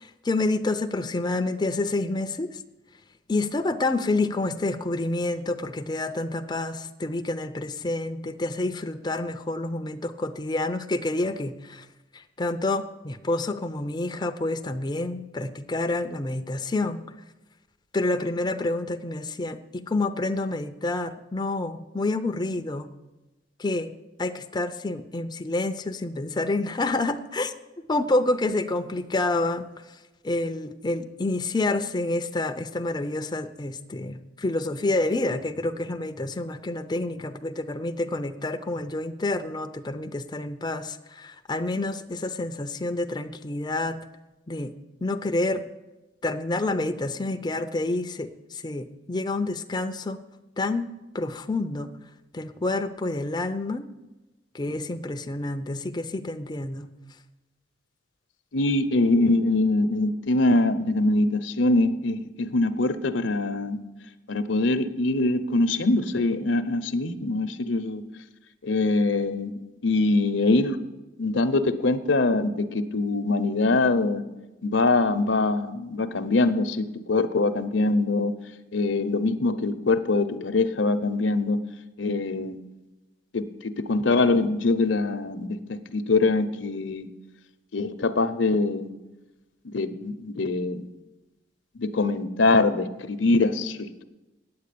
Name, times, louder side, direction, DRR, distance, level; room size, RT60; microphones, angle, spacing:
voice 1, 0.0-2.6 3.3-11.9 12.1-17.0 17.9-22.9 23.6-23.9 24.2-27.5 27.9-29.6 30.2-44.0 44.5-44.7 45.0-45.6 46.2-50.2 50.6-50.9 51.1-51.9 52.3-53.9 54.5-56.9, left 2 dB, 20° left, 7 dB, 0.5 m, -28 dB
voice 2, 58.5-63.8 64.3-68.0 68.6-70.8 71.2-74.2 74.6-78.3 78.7-81.6 82.0-82.6 83.3-87.1 87.7-88.9 89.6-90.9 91.7-94.0, left 2 dB, 70° left, 12 dB, 0.8 m, -23 dB
9.5 x 8.2 x 8.4 m, 1.1 s
head